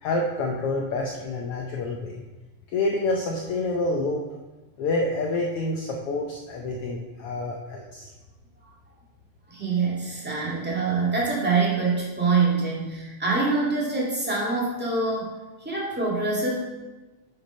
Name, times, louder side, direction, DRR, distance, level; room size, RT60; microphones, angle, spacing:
voice 1, 0.0-2.2 2.7-4.2 4.8-8.1, left 2 dB, 70° left, 1 dB, 1.4 m, -28 dB
voice 2, 9.5-16.5, right 4 dB, 5° right, -5 dB, 1.5 m, -25 dB
8.4 x 6.1 x 5.2 m, 1.2 s
omnidirectional pair, 3.3 m